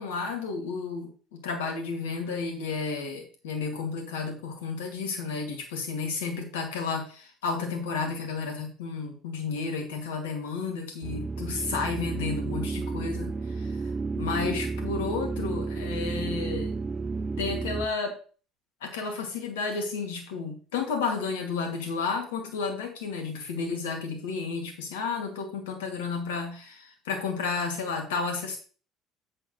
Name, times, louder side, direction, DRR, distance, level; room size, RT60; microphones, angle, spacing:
voice 1, 0.0-16.7 17.4-18.2 18.8-28.6, left 4 dB, 70° left, 3 dB, 2.3 m, -32 dB
sound 1, 11.0-17.9, right 4 dB, 25° right, 0.5 m, -32 dB
8.5 x 7.4 x 3.1 m, 0.39 s
figure-of-eight pair, 60°, 0 cm